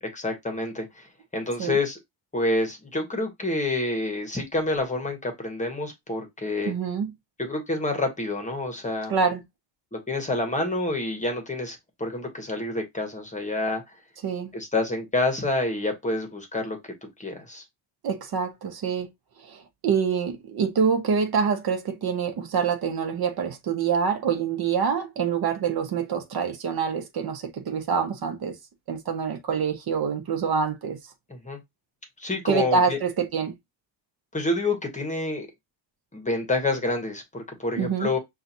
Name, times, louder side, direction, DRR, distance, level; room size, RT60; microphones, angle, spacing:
voice 1, 0.1-1.0 1.3-2.0 2.3-6.7 7.4-9.2 9.9-13.8 14.5-16.8 17.2-17.6 31.4-31.6 32.2-33.0 34.3-35.5 36.1-38.2, left 2 dB, 15° left, 1.0 m, -28 dB
voice 2, 6.6-7.1 9.1-9.4 14.2-14.5 18.0-19.1 19.4-28.6 28.9-31.0 32.5-33.5 37.8-38.1, right 6 dB, 50° right, 0.9 m, -26 dB
5.6 x 2.4 x 2.7 m
cardioid pair, 130°, 46 cm